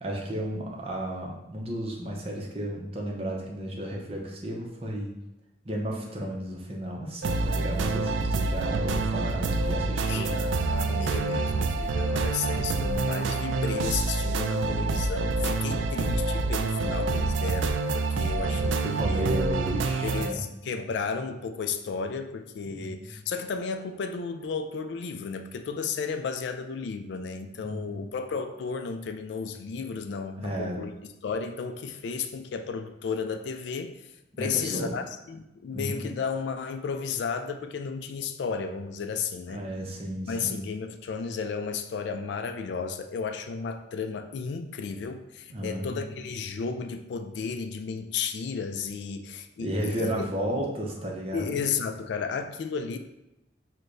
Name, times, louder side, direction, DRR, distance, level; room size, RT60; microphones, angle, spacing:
voice 1, 0.0-5.1 5.6-10.3 18.2-20.4 22.7-23.2 27.6-28.0 30.4-30.9 34.3-34.9 35.7-36.0 39.5-40.7 45.5-46.1 49.6-51.6, right 1 dB, 30° right, -1 dB, 0.6 m, -33 dB
sound 1, 7.2-20.3, right 3 dB, 85° right, 0.3 m, -27 dB
voice 2, 10.1-18.7 19.0-19.3 20.0-30.9 31.2-33.9 34.4-35.0 35.3-39.6 40.3-50.6 51.3-53.0, left 5 dB, 70° left, 7 dB, 0.3 m, -33 dB
6.2 x 2.1 x 2.5 m, 0.90 s
head